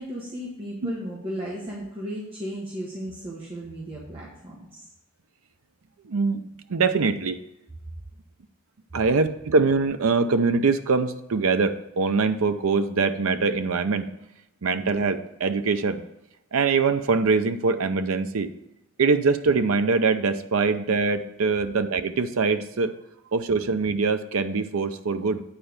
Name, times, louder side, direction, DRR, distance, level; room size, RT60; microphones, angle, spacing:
voice 1, 0.0-4.9, equal, 25° right, -5 dB, 1.4 m, -35 dB
voice 2, 6.0-6.4 6.7-7.4 8.9-14.1 14.6-16.0 16.5-18.5 19.0-22.9 23.3-25.4, right 4 dB, 90° right, 9 dB, 0.6 m, -23 dB
9.1 x 4.4 x 6.6 m, 0.89 s
head